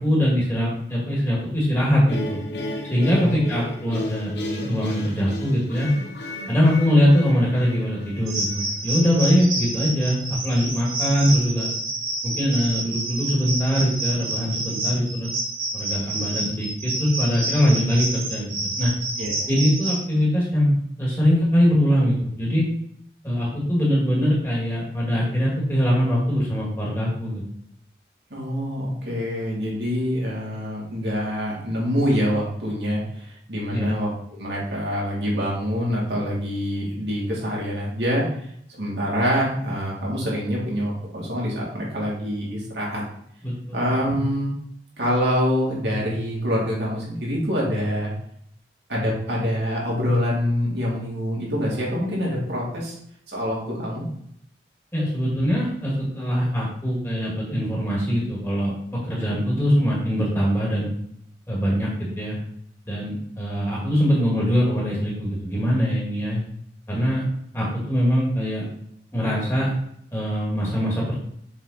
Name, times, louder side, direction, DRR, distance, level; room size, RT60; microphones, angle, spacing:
voice 1, 0.0-2.4 2.9-5.9 6.5-11.7 12.2-15.3 15.7-18.9 19.5-22.7 23.2-27.4 33.7-33.9 43.4-43.9 54.9-60.9 61.5-62.4 62.9-66.4 66.9-67.3 67.5-68.6 69.1-69.7 70.1-71.2, equal, 15° left, -5 dB, 1.9 m, -22 dB
sound 1, 2.1-9.2, left 1 dB, 75° left, 0.8 m, -34 dB
sound 2, 8.3-20.0, right 2 dB, 50° right, 1.7 m, -29 dB
voice 2, 28.3-43.0 43.7-44.5 45.0-48.1 48.9-53.0 53.3-54.0, equal, 85° right, -5 dB, 2.4 m, -25 dB
7.1 x 3.9 x 4.1 m, 0.70 s
head